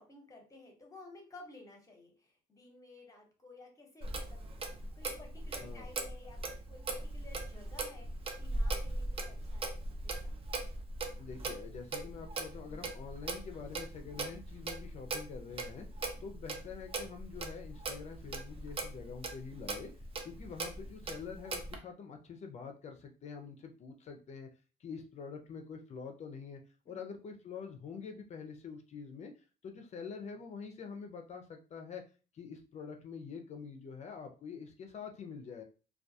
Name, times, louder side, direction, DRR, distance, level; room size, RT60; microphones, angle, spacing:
voice 1, 0.0-4.4 4.9-6.4 6.7-10.3 20.2-20.4 26.9-27.1, left 2 dB, 20° left, 1 dB, 0.9 m, -55 dB
Clock, 4.0-21.8, right 2 dB, 35° right, 0.5 m, -39 dB
voice 2, 5.6-5.9 11.2-15.9 16.2-19.9 20.2-24.5 24.8-26.6 26.9-29.3 29.6-32.0 32.3-35.6, left 5 dB, 40° left, 5 dB, 0.5 m, -46 dB
2.3 x 2.2 x 2.7 m, 0.35 s
cardioid pair, 110°, 17 cm